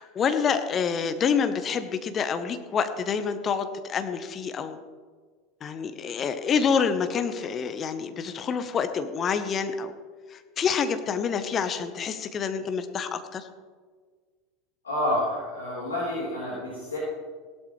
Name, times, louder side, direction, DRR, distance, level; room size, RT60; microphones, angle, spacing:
voice 1, 0.0-4.8 5.6-9.9 10.3-13.5, left 6 dB, 30° left, 9 dB, 1.1 m, -27 dB
voice 2, 14.8-17.0, left 1 dB, 75° left, -7 dB, 4.0 m, -29 dB
17.0 x 12.0 x 3.3 m, 1.5 s
figure-of-eight pair, 75°, 0 cm